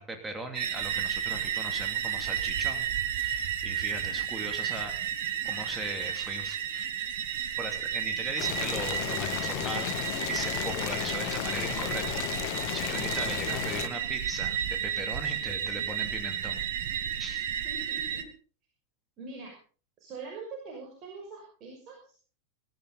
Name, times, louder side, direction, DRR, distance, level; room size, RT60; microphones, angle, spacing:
voice 1, 0.0-2.9 3.2-4.9 5.4-6.9 7.4-10.0 10.3-12.4 12.7-16.6 17.2-17.5, right 1 dB, 10° right, 4 dB, 2.7 m, -39 dB
sound 1, 0.5-18.2, right 9 dB, 55° right, 1.6 m, -32 dB
Boiling, 8.4-13.9, left 20 dB, 45° left, 0.7 m, -34 dB
voice 2, 17.6-18.2 19.2-19.6 20.0-22.2, right 4 dB, 35° right, 0 dB, 5.8 m, -43 dB
22.0 x 13.5 x 4.0 m, 0.39 s
figure-of-eight pair, 90°, 0 cm